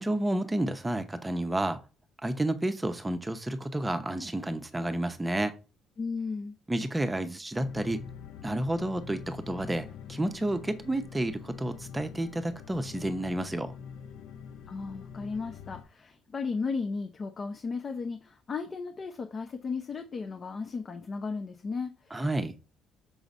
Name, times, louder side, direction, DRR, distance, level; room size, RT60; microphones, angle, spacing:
voice 1, 0.0-1.8 2.2-5.5 6.7-8.0 8.4-13.8 22.1-22.5, right 1 dB, 10° right, 0.9 m, -30 dB
voice 2, 6.0-6.6 14.7-22.2, left 4 dB, 35° left, 0.7 m, -35 dB
sound 1, 7.6-15.8, left 7 dB, 75° left, 0.8 m, -45 dB
6.3 x 3.9 x 3.9 m
cardioid pair, 110°, 0 cm